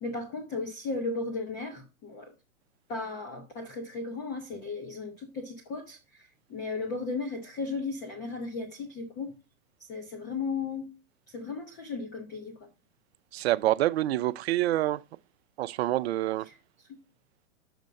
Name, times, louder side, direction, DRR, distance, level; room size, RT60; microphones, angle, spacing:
voice 1, 0.0-2.3 2.9-9.3 9.9-10.9 11.3-12.7, left 3 dB, 10° left, 0.3 m, -35 dB
voice 2, 13.3-15.0 15.6-16.5, right 15 dB, 50° right, 0.4 m, -27 dB
6.6 x 5.2 x 5.1 m
hypercardioid pair, 120°, 42 cm